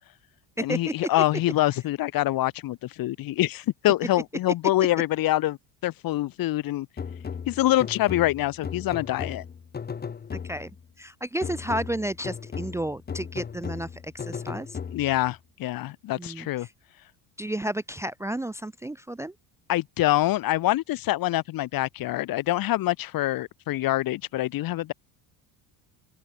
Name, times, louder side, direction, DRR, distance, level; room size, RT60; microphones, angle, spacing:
voice 1, 0.6-5.6 5.8-6.9 7.5-9.4 14.9-16.7 19.7-24.9, left 15 dB, 60° left, 1.8 m, -25 dB
sound 1, 7.0-10.8 11.4-15.3, left 6 dB, 25° left, 1.4 m, -36 dB
voice 2, 11.0-14.8 16.2-16.5 17.4-19.3, right 1 dB, 5° right, 0.6 m, -32 dB
open air
cardioid pair, 115°, 40 cm